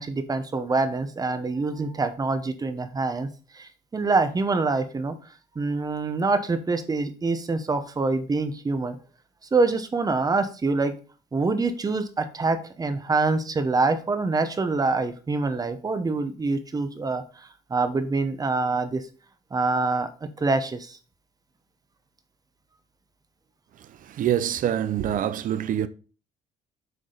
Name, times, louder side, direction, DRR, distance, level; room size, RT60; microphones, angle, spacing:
voice 1, 0.0-3.3 3.5-5.1 5.6-9.0 9.5-10.9 11.3-17.2 17.7-19.1 19.5-20.1 20.4-21.0, right 3 dB, 20° right, 0.9 m, -25 dB
voice 2, 24.2-25.9, right 10 dB, 55° right, 0.7 m, -25 dB
8.0 x 4.9 x 4.0 m
cardioid pair, 110°, 17 cm